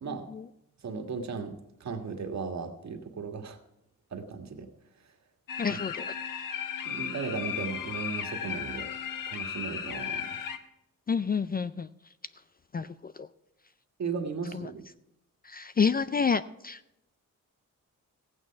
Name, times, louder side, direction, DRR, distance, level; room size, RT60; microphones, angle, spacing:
voice 1, 0.8-3.6 4.1-4.7 5.7-5.8 6.9-8.9 9.3-10.4 14.0-14.8, right 5 dB, 55° right, 5 dB, 1.7 m, -36 dB
sound 1, 5.5-10.6, left 8 dB, 80° left, 1.1 m, -35 dB
voice 2, 5.6-6.1 11.1-11.9 12.7-13.3 15.5-16.8, left 6 dB, 30° left, 14 dB, 0.3 m, -29 dB
15.5 x 8.8 x 5.7 m, 0.86 s
wide cardioid pair, 130°, 32 cm